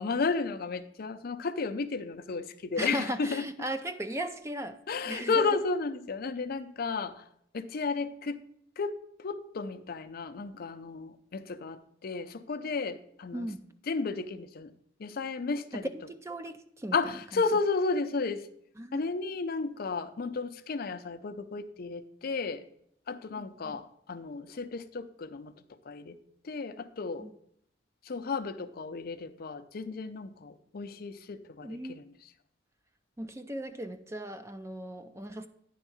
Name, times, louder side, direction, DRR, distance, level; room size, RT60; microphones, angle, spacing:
voice 1, 0.0-3.5 4.9-7.2 7.5-8.4 8.8-13.5 13.9-14.7 15.0-15.9 16.9-18.4 18.9-22.6 23.1-25.5 25.9-26.2 26.4-27.3 28.1-32.1, left 4 dB, 50° left, 0.5 m, -33 dB
voice 2, 2.8-5.5 13.3-13.6 15.7-17.4 18.8-19.1 23.4-23.8 27.2-27.3 31.6-32.0 33.2-35.5, right 1 dB, 15° right, 0.4 m, -37 dB
10.0 x 3.6 x 6.9 m
head